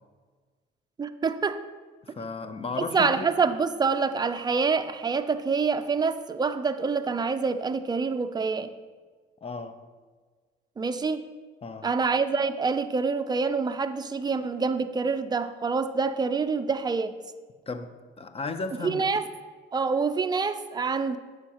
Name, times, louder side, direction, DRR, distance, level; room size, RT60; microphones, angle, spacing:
voice 1, 1.0-1.6 2.9-8.7 10.8-11.2 11.8-17.1 18.8-19.2 19.7-21.2, right 4 dB, 20° right, 9 dB, 0.4 m, -26 dB
voice 2, 2.0-3.3 9.4-9.8 11.6-11.9 17.7-19.0, left 4 dB, 30° left, 10 dB, 0.6 m, -35 dB
9.4 x 6.4 x 2.9 m, 1.4 s
cardioid pair, 90°, 20 cm